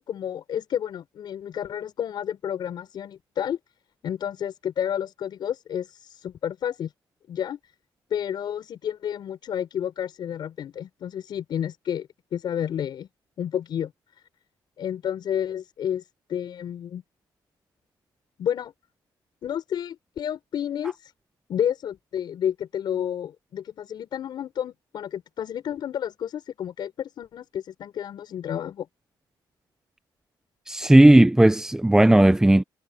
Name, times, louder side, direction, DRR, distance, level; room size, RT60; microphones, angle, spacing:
voice 1, 0.0-3.6 4.0-6.9 7.3-7.6 8.1-13.1 13.4-13.9 14.8-17.0 18.4-18.7 19.4-21.1 21.5-28.9, left 9 dB, 60° left, 5.7 m, -30 dB
voice 2, 30.7-32.6, right 1 dB, 5° right, 0.6 m, -15 dB
cardioid pair, 100°, 9 cm